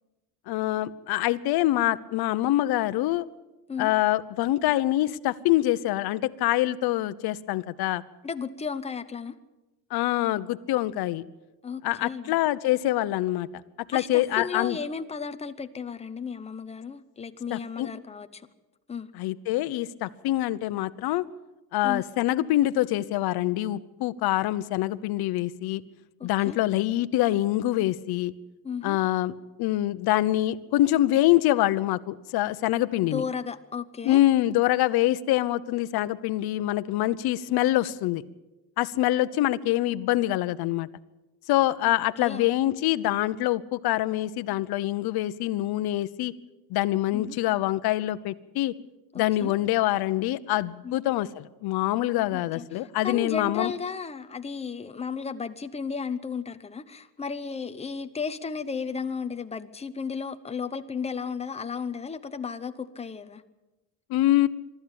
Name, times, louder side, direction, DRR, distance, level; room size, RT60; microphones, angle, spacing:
voice 1, 0.5-3.3 3.8-8.0 9.9-11.2 11.8-13.5 13.9-14.8 17.5-17.9 19.2-21.2 21.7-25.8 26.2-28.3 28.8-33.2 34.0-38.2 38.8-40.9 41.5-46.3 46.7-48.7 49.1-53.7 64.1-64.5, left 15 dB, 70° left, 13 dB, 0.9 m, -25 dB
voice 2, 8.2-9.3 11.6-12.3 13.9-18.4 18.9-19.1 21.8-22.0 26.2-26.6 28.6-29.0 33.0-34.2 41.8-41.9 42.2-42.5 47.1-47.4 49.1-49.5 50.8-51.0 52.3-52.7 53.0-63.4, left 5 dB, 15° left, 9 dB, 0.8 m, -34 dB
23.5 x 13.5 x 8.8 m, 1.1 s
cardioid pair, 165°, 39 cm